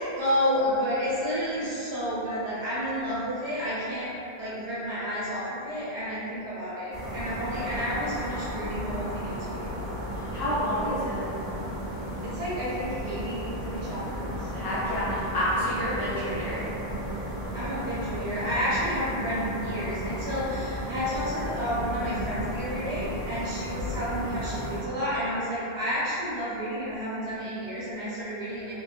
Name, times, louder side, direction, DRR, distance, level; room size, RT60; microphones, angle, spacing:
voice 1, 0.2-4.1 4.4-9.7 12.2-14.5 17.5-28.7, equal, 75° right, -10 dB, 1.2 m, -31 dB
sound 1, 6.9-24.8, equal, 55° right, 1.0 m, -34 dB
voice 2, 10.3-11.3 14.5-16.7, equal, 65° left, -11 dB, 0.9 m, -29 dB
2.6 x 2.2 x 2.4 m, 2.9 s
omnidirectional pair, 1.1 m